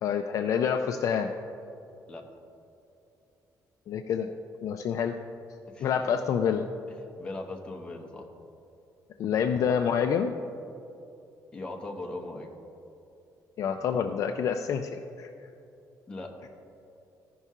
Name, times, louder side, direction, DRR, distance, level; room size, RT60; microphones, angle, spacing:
voice 1, 0.0-1.3 3.9-4.3 4.6-5.2 5.8-6.7 9.2-10.4 13.6-15.3, left 7 dB, 55° left, 5 dB, 0.4 m, -27 dB
voice 2, 7.2-8.3 11.5-12.5 16.1-16.5, left 2 dB, 15° left, 0 dB, 0.9 m, -39 dB
15.0 x 5.5 x 3.7 m, 2.7 s
cardioid pair, 175°, 7 cm